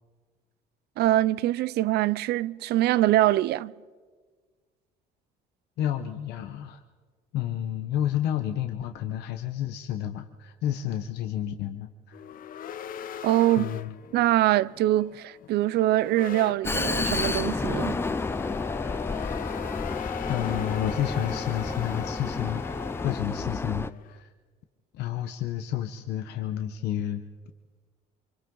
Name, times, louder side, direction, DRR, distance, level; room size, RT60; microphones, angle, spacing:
voice 1, 1.0-3.7 13.2-13.7 14.1-18.0, right 15 dB, 75° right, 0.5 m, -23 dB
voice 2, 5.8-6.8 7.3-12.2 13.6-13.9 20.3-22.6 23.0-24.3 24.9-27.2, left 11 dB, 80° left, 1.0 m, -30 dB
sound 1, 12.1-24.2, left 9 dB, 55° left, 0.7 m, -40 dB
Vehicle, 16.6-23.9, left 3 dB, 15° left, 0.5 m, -30 dB
28.0 x 24.5 x 3.9 m
cardioid pair, 110°, 17 cm